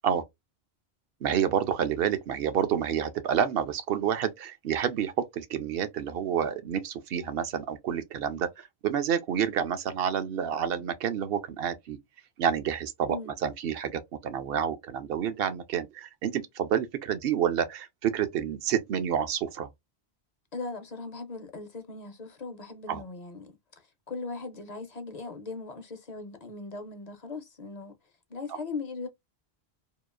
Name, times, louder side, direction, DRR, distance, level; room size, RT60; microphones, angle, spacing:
voice 1, 1.2-12.0 12.4-19.7 22.9-23.0, right 8 dB, 70° right, 0.8 m, -29 dB
voice 2, 20.5-23.5 24.1-28.0 28.3-29.1, left 3 dB, 50° left, 0.6 m, -39 dB
2.9 x 2.4 x 2.3 m
omnidirectional pair, 1.1 m